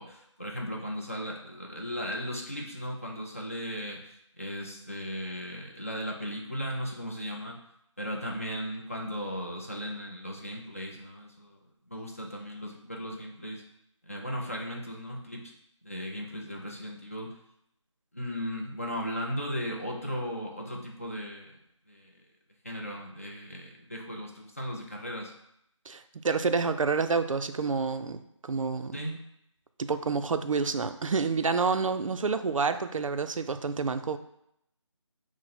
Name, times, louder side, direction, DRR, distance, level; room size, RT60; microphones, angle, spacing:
voice 1, 0.0-7.6 8.0-11.6 11.9-13.6 14.1-15.5 15.8-17.3 18.1-21.5 21.9-22.1 22.6-25.3 28.9-29.2, equal, 25° left, -1 dB, 0.5 m, -36 dB
voice 2, 25.9-29.0 29.8-34.2, right 4 dB, 90° right, 9 dB, 0.5 m, -28 dB
6.1 x 2.1 x 4.2 m, 0.75 s
figure-of-eight pair, 180°, 16 cm